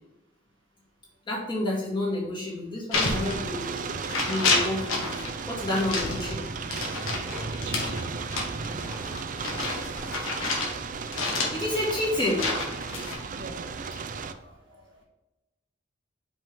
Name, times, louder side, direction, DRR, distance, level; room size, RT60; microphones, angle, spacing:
voice 1, 1.3-3.8 4.2-5.2 5.5-6.5 11.5-12.5, left 1 dB, 25° left, -5 dB, 2.1 m, -29 dB
sound 1, 2.9-3.8 4.0-5.3 5.7-10.7 11.1-13.2, left 3 dB, 80° left, 1.5 m, -29 dB
sound 2, 2.9-14.3, right 5 dB, 40° right, 0.4 m, -35 dB
voice 2, 7.6-8.1 13.2-13.6 14.1-15.0, right 1 dB, 65° right, 0 dB, 1.4 m, -44 dB
5.5 x 5.4 x 3.5 m, 1.0 s
head